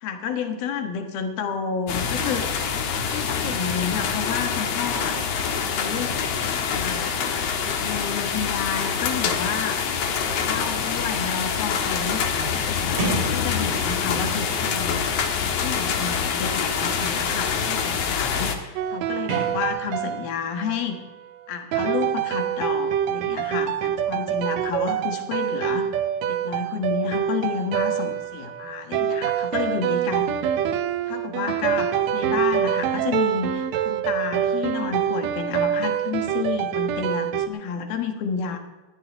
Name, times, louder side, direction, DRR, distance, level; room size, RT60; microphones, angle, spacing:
voice 1, 0.0-2.5 3.1-5.2 5.6-6.1 6.7-9.8 10.2-15.1 15.4-21.0 21.5-25.9 26.3-30.4 31.1-38.6, left 6 dB, 85° left, 5 dB, 3.3 m, -30 dB
sound 1, 1.9-18.6, left 6 dB, 55° left, 2.1 m, -25 dB
Sliding door, 9.4-14.4 15.3-20.3, right 2 dB, 50° right, 5.7 m, -38 dB
sound 2, 18.8-21.0 21.7-37.5, right 9 dB, 80° right, 1.6 m, -25 dB
20.0 x 13.0 x 3.5 m, 1.2 s
omnidirectional pair, 4.1 m